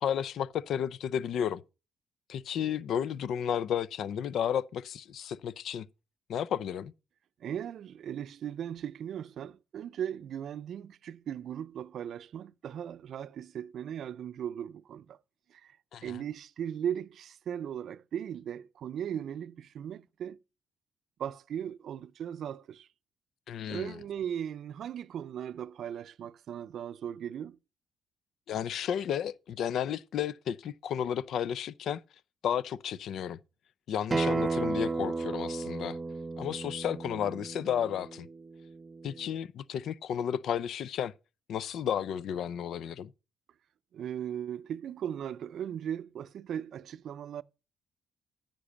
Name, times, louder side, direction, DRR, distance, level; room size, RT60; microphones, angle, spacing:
voice 1, 0.0-1.6 2.3-5.9 6.3-6.9 15.9-16.2 23.5-24.0 28.5-32.0 32.4-33.4 33.9-36.0 36.4-38.3 39.0-41.1 41.5-43.1, left 9 dB, 70° left, 0.5 m, -32 dB
voice 2, 7.4-15.2 15.5-15.8 16.0-20.4 21.2-22.9 23.7-27.6 43.9-47.4, right 9 dB, 65° right, 0.5 m, -38 dB
Acoustic guitar, 34.1-39.3, right 3 dB, 25° right, 0.8 m, -34 dB
10.0 x 5.2 x 6.9 m
cardioid pair, 90°, 0 cm